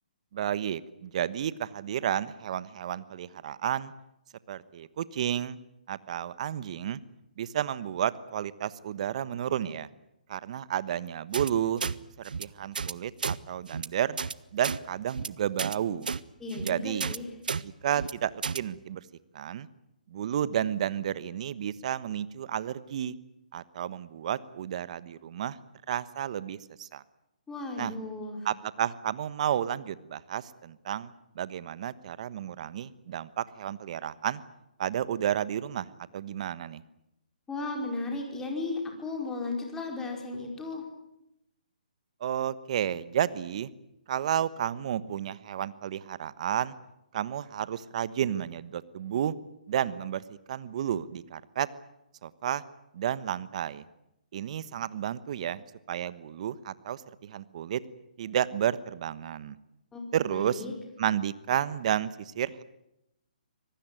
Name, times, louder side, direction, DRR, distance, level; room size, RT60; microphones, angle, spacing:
voice 1, 0.3-3.9 4.5-5.6 5.9-7.0 7.4-9.9 10.3-11.8 12.2-14.2 14.5-16.1 16.6-17.1 17.6-19.0 19.3-19.7 20.1-23.1 23.5-25.6 25.9-27.0 27.8-27.9 28.4-34.4 34.8-35.9 36.1-36.8 42.2-43.7 44.1-46.7 47.1-49.3 49.7-51.7 52.2-52.6 52.9-53.8 54.3-55.6 55.9-57.8 58.2-59.6 60.1-60.6 61.0-62.6, right 10 dB, 50° right, 16 dB, 1.2 m, -31 dB
sound 1, 11.3-11.5 11.8-11.9 12.3-12.4 12.8-12.9 13.2-13.4 13.7-13.9 14.2-14.3 14.6-14.8 15.1-15.3 15.6-15.8 16.1-16.2 16.5-16.7 17.0-17.2 17.5-17.6 17.9-18.1 18.4-18.6, right 5 dB, 75° right, 0.9 m, -32 dB
voice 2, 16.4-17.3 27.5-28.5 37.5-40.8 59.9-60.7, left 3 dB, 10° left, 1 dB, 5.0 m, -35 dB
25.0 x 19.0 x 9.2 m, 0.86 s
hypercardioid pair, 145°, 5 cm